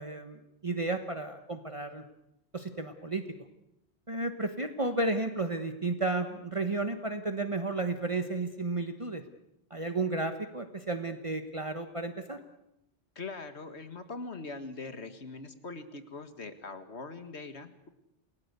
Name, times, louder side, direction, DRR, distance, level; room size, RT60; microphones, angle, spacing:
voice 1, 0.0-2.0 2.5-3.2 4.1-9.2 9.7-12.4, right 2 dB, 30° right, 6 dB, 1.3 m, -33 dB
voice 2, 13.2-17.9, left 3 dB, 80° left, 9 dB, 2.2 m, -42 dB
29.0 x 18.5 x 8.2 m, 0.86 s
omnidirectional pair, 1.1 m